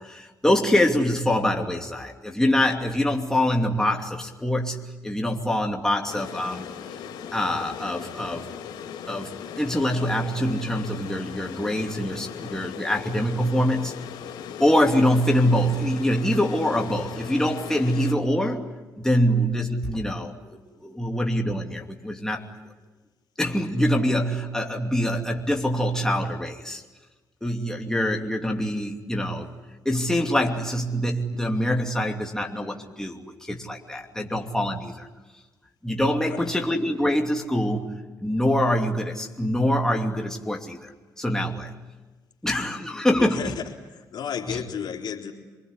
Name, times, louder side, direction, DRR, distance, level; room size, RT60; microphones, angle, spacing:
voice 1, 0.0-6.6 7.3-8.5 9.1-13.9 14.6-18.7 19.0-22.5 23.4-26.8 27.4-29.5 29.8-35.1 35.8-37.9 38.2-41.8 42.4-43.5 44.5-44.6, equal, 5° left, 1 dB, 2.8 m, -24 dB
sound 1, 6.1-18.1, left 8 dB, 85° left, 2.9 m, -38 dB
voice 2, 43.2-45.3, left 8 dB, 65° left, 1 dB, 3.8 m, -33 dB
27.0 x 20.5 x 9.8 m, 1.2 s
supercardioid pair, 65°, 8 cm